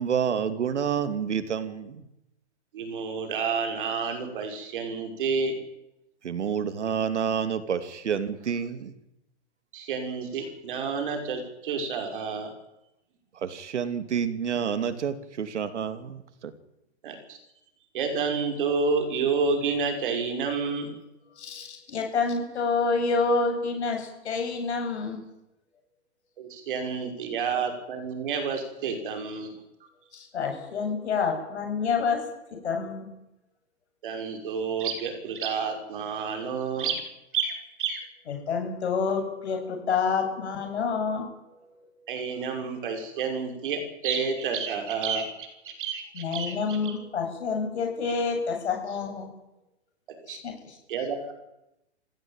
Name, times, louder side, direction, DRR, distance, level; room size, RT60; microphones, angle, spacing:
voice 1, 0.0-2.0 6.2-8.9 13.4-16.5, right 7 dB, 85° right, 11 dB, 2.9 m, -29 dB
voice 2, 2.7-5.5 9.7-12.5 17.0-17.4 17.9-20.9 26.4-29.5 34.0-37.0 37.3-38.0 42.1-46.8 50.3-50.4 50.9-51.3, right 5 dB, 50° right, 5 dB, 6.0 m, -29 dB
voice 3, 21.4-25.2 30.1-32.2 32.5-33.1 38.3-41.3 46.1-49.3 50.3-50.7, left 5 dB, 70° left, 3 dB, 8.0 m, -28 dB
26.5 x 16.5 x 9.1 m, 0.89 s
hypercardioid pair, 165°, 34 cm